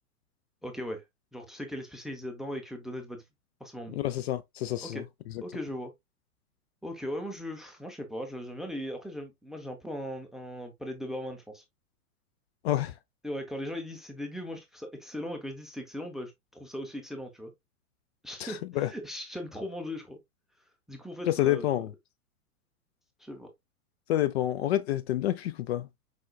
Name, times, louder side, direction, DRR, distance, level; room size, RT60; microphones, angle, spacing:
voice 1, 0.6-1.0 1.3-3.2 3.6-4.0 4.8-5.0 5.4-5.9 6.8-11.6 13.2-17.5 18.2-20.2 20.9-21.7 23.2-23.5, equal, ahead, 0.6 m, -38 dB
voice 2, 3.9-5.0 12.6-12.9 18.4-18.9 21.3-21.9 24.1-25.9, left 13 dB, 45° left, 0.5 m, -28 dB
5.0 x 3.9 x 2.3 m
hypercardioid pair, 115°, 44 cm